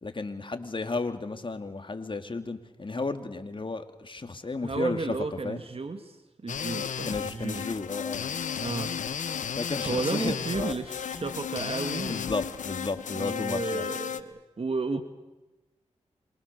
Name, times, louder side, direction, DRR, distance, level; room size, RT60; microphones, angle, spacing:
voice 1, 0.0-5.1 5.4-5.6 7.0-8.3 9.6-10.8 11.1-11.4 12.1-13.9, left 3 dB, 40° left, 7 dB, 2.7 m, -33 dB
voice 2, 4.6-6.2 6.4-7.7 8.6-9.0 9.8-12.2 13.1-15.0, right 3 dB, 50° right, 8 dB, 2.2 m, -33 dB
sound 1, 6.5-14.2, left 8 dB, 80° left, 1.2 m, -34 dB
27.0 x 24.0 x 7.0 m, 1.1 s
cardioid pair, 45°, 13 cm